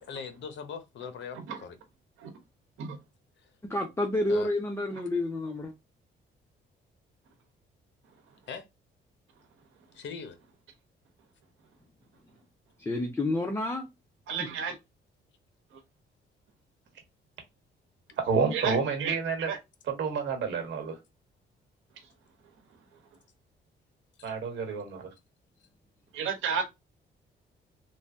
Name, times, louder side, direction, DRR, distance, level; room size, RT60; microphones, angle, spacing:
voice 1, 0.0-1.8 3.4-3.5 4.3-4.5 8.5-8.6 9.9-10.4 24.2-24.3, left 6 dB, 65° left, 0.7 m, -41 dB
voice 2, 3.7-5.7 12.8-13.9 14.3-14.5, left 1 dB, 15° left, 0.6 m, -29 dB
voice 3, 14.3-14.8 18.5-19.6 26.1-26.6, right 6 dB, 85° right, 0.9 m, -32 dB
voice 4, 18.3-19.5 20.0-20.9 24.2-25.1, right 5 dB, 65° right, 1.2 m, -29 dB
3.1 x 2.2 x 2.6 m
cardioid pair, 90°, 20 cm